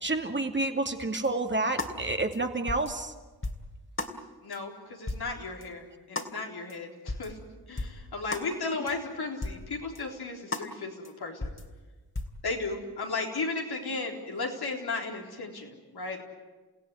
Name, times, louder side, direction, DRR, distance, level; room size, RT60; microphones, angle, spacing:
voice 1, 0.0-3.1, right 2 dB, 30° right, 4 dB, 2.4 m, -29 dB
sound 1, 1.2-1.3 1.8-1.9 2.3-2.4 2.7-2.9 3.4-3.7 4.0-4.1 4.5-4.6 5.1-5.3 5.6-5.7 6.2-6.3 6.7-6.8 7.1-7.3 7.8-8.0 8.3-8.5 8.9-9.0 9.4-9.6 9.9-10.0 10.5-10.7 11.0-11.1 11.4-11.6 12.2-12.4, left 2 dB, 30° left, 3.0 m, -34 dB
voice 2, 4.4-7.4 7.7-11.5 12.4-16.2, left 3 dB, 75° left, 0 dB, 4.1 m, -35 dB
30.0 x 16.0 x 9.6 m, 1.3 s
cardioid pair, 55°, 38 cm